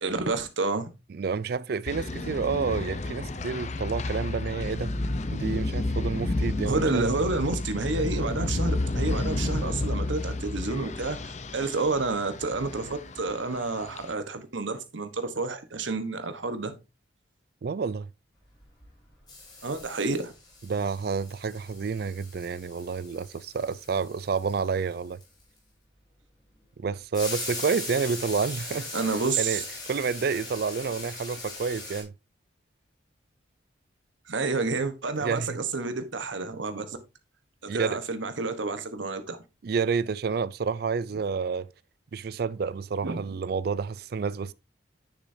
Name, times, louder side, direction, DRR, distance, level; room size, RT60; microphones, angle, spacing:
voice 1, 0.0-0.9 6.7-16.7 19.6-20.3 28.9-29.6 34.3-37.0 37.7-39.4 43.0-43.2, right 3 dB, 75° right, 1.1 m, -29 dB
voice 2, 1.1-4.9 5.3-7.1 17.6-18.1 20.7-25.2 26.8-32.1 35.2-35.6 37.7-38.0 39.6-41.7 42.1-44.5, right 5 dB, 55° right, 0.4 m, -29 dB
sound 1, 1.9-14.1, left 2 dB, 35° left, 0.6 m, -31 dB
sound 2, 18.6-19.0 19.3-25.6 27.1-32.0, left 3 dB, 20° left, 4.1 m, -40 dB
10.0 x 6.1 x 2.7 m
head